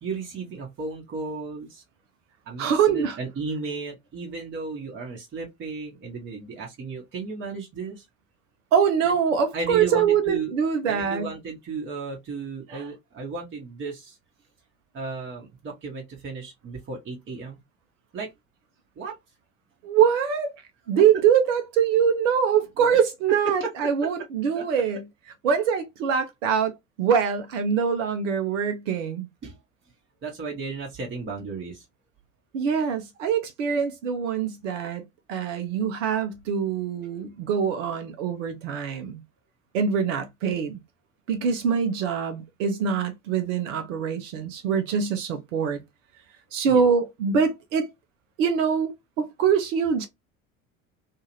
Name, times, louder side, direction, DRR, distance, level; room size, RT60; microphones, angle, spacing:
voice 1, 0.0-1.8 2.4-8.0 9.5-10.5 10.9-14.2 14.9-17.6 18.1-18.3 19.0-19.2 21.0-21.1 22.8-22.9 23.4-23.7 24.0-24.3 24.5-24.7 29.4-29.6 30.2-31.8 46.6-46.8, right 4 dB, 30° right, 1.0 m, -34 dB
voice 2, 2.6-3.2 8.7-11.3 12.7-12.8 19.8-20.5 20.9-25.0 25.4-29.3 32.5-35.0 35.3-39.2 39.7-40.8 41.3-45.8 46.5-47.9 48.4-50.1, right 7 dB, 65° right, 0.7 m, -24 dB
2.7 x 2.4 x 2.9 m
figure-of-eight pair, 65°, 41 cm